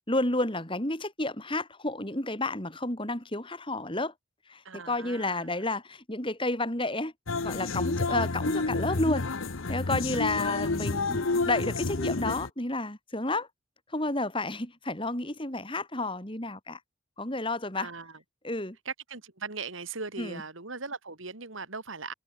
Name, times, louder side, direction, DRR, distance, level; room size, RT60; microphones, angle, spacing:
voice 1, 0.1-4.1 4.5-7.1 7.4-9.3 9.7-13.5 13.9-16.8 17.2-17.9 18.4-18.8 20.2-20.4, left 2 dB, 25° left, 3.6 m, -31 dB
voice 2, 4.6-5.5 8.1-8.2 10.1-10.2 17.8-18.1 18.8-22.1, right 4 dB, 70° right, 3.0 m, -39 dB
sound 1, 7.3-12.5, left 3 dB, 75° left, 1.1 m, -29 dB
head